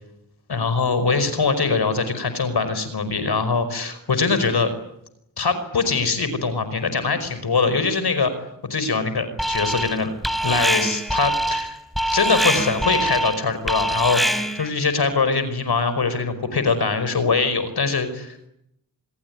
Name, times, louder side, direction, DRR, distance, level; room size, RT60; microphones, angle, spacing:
voice 1, 0.5-4.7 5.4-8.3 8.7-10.1 10.4-11.8 12.1-18.5, left 4 dB, 60° left, 11 dB, 5.3 m, -22 dB
Alarm, 9.4-10.0 10.2-14.7, right 1 dB, ahead, 3.9 m, -23 dB
26.5 x 21.0 x 9.7 m, 0.78 s
cardioid pair, 50°, 43 cm